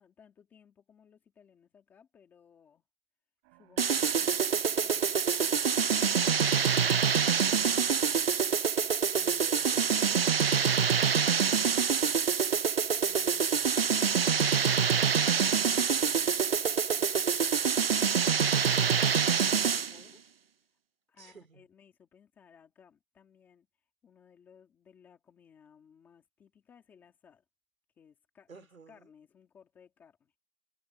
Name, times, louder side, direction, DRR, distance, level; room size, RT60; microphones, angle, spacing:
voice 1, 0.0-2.8 3.5-7.3 13.0-20.3 21.1-23.7 24.0-27.4 28.0-30.3, left 7 dB, 5° left, 2.2 m, -61 dB
sound 1, 3.4-19.6, right 31 dB, 15° right, 6.2 m, -64 dB
sound 2, 3.8-20.0, right 6 dB, 50° right, 0.6 m, -26 dB
voice 2, 8.6-11.1 21.2-21.6 28.5-29.0, right 5 dB, 85° right, 3.8 m, -54 dB
hypercardioid pair, 175°, 40 cm